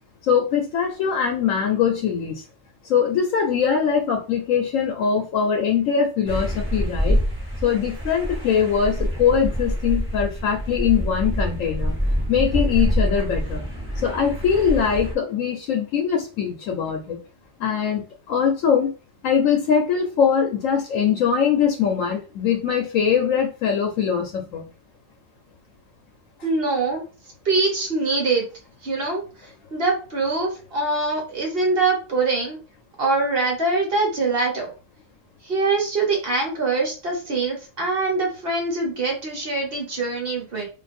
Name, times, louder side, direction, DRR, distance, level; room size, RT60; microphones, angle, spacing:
voice 1, 0.2-2.4 2.8-7.2 7.6-11.9 12.3-13.6 14.0-17.2 17.6-18.9 19.2-24.7, left 7 dB, 85° left, 3 dB, 1.0 m, -22 dB
sound 1, 6.3-15.1, equal, 10° right, 1.1 m, -26 dB
voice 2, 26.4-27.0 27.4-28.5 28.8-32.6 33.0-34.7 35.4-40.7, right 3 dB, 50° right, 0 dB, 1.3 m, -23 dB
2.6 x 2.5 x 4.1 m, 0.35 s
omnidirectional pair, 1.3 m